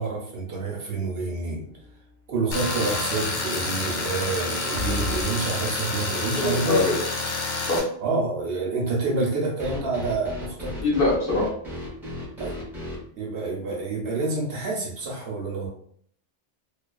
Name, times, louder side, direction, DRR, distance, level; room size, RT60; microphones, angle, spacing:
voice 1, 0.0-1.7 2.3-6.8 8.0-10.8 12.4-12.5 13.2-15.7, right 3 dB, 65° right, -1 dB, 0.7 m, -28 dB
sound 1, 1.7-2.1 2.5-2.6 4.8-5.3 9.6-13.0, left 2 dB, ahead, 0.7 m, -34 dB
Tools, 2.5-7.8, left 3 dB, 85° left, 1.0 m, -28 dB
voice 2, 6.3-6.9 7.6-7.8 10.8-11.5, left 2 dB, 55° left, -4 dB, 0.9 m, -22 dB
2.4 x 2.3 x 2.3 m, 0.63 s
omnidirectional pair, 1.2 m